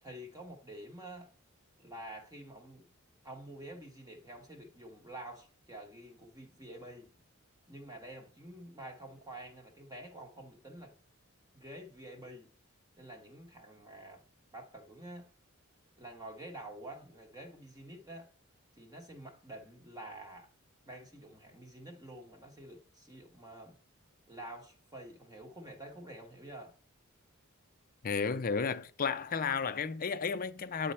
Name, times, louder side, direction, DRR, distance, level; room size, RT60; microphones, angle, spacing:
voice 1, 0.0-1.3 1.8-2.9 3.2-7.1 7.7-11.0 11.5-12.5 13.0-14.2 14.5-15.3 16.0-18.3 18.8-20.5 20.9-23.8 24.3-26.7 30.8-30.9, right 1 dB, 15° right, 1.0 m, -48 dB
voice 2, 28.0-30.9, left 5 dB, 40° left, 0.5 m, -33 dB
8.7 x 4.1 x 4.3 m
head